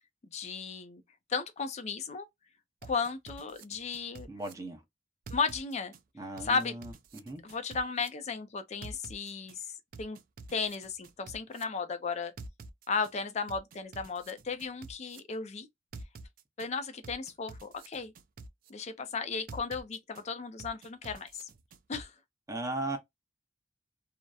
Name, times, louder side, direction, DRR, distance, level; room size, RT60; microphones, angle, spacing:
voice 1, 0.3-1.0 1.3-2.3 2.8-4.3 5.3-5.9 6.4-6.8 7.4-9.6 10.0-10.2 10.5-12.3 12.9-15.7 16.6-18.1 18.7-21.5 21.9-22.1, left 5 dB, 40° left, 0.4 m, -35 dB
sound 1, 2.8-4.5 5.3-6.0 6.4-8.1 8.8-9.6 9.9-11.6 12.4-13.1 13.5-15.2 15.9-16.7 17.0-18.7 19.5-20.2 20.6-22.0, right 3 dB, 50° right, 0.3 m, -47 dB
voice 2, 4.3-4.8 6.1-7.4 22.5-23.0, right 2 dB, 20° right, 0.7 m, -37 dB
2.7 x 2.0 x 2.3 m
head